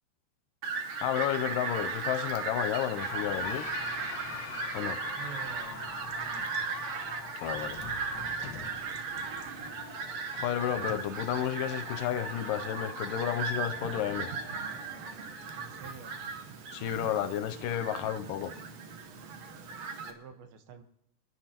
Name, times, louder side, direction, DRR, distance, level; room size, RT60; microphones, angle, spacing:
Fowl, 0.6-20.1, right 5 dB, 65° right, 1.8 m, -37 dB
voice 1, 1.0-3.7 4.7-5.0 7.4-7.8 10.3-14.3 16.7-18.6, left 11 dB, 80° left, 2.1 m, -32 dB
sound 1, 3.0-19.8, left 5 dB, 60° left, 1.2 m, -45 dB
voice 2, 5.2-6.5 15.6-16.2 19.9-20.8, right 7 dB, 85° right, 3.0 m, -48 dB
26.0 x 11.0 x 2.9 m
omnidirectional pair, 4.2 m